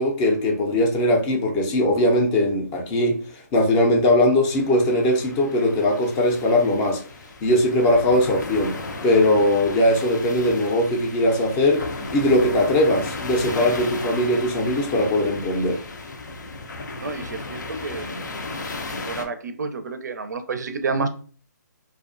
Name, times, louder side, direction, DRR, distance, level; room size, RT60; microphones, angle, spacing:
voice 1, 0.0-3.2 3.5-7.0 7.4-8.8 9.0-11.8 12.1-15.8, left 1 dB, 20° left, 0.4 m, -20 dB
sound 1, 4.4-19.2, left 3 dB, 80° left, 0.5 m, -35 dB
voice 2, 17.0-18.3 18.9-21.1, right 4 dB, 70° right, 0.4 m, -29 dB
2.4 x 2.2 x 2.4 m
hypercardioid pair, 145°, 10 cm